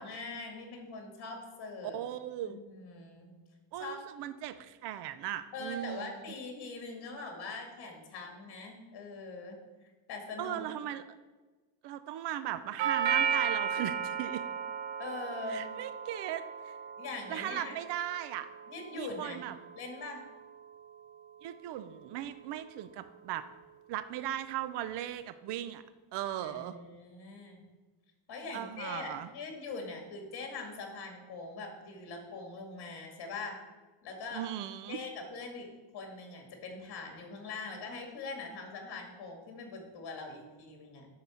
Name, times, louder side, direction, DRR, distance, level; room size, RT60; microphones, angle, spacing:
voice 1, 0.0-2.0 2.4-3.3 3.8-4.0 5.5-9.6 10.1-10.7 15.0-15.6 17.0-17.8 18.7-19.4 19.7-20.2 26.4-27.6 28.3-33.6 34.0-34.5 34.9-41.1, left 3 dB, 55° left, 3 dB, 2.2 m, -42 dB
voice 2, 1.9-2.6 3.7-6.1 10.4-11.0 11.8-14.5 15.5-16.8 17.3-18.5 18.9-19.5 21.4-23.5 23.9-25.8 26.1-26.8 28.5-29.3 34.3-35.0, right 12 dB, 65° right, 12 dB, 0.6 m, -38 dB
Doorbell, 12.8-20.8, right 7 dB, 90° right, 0.9 m, -35 dB
10.0 x 4.1 x 7.1 m, 1.3 s
cardioid pair, 160°, 45 cm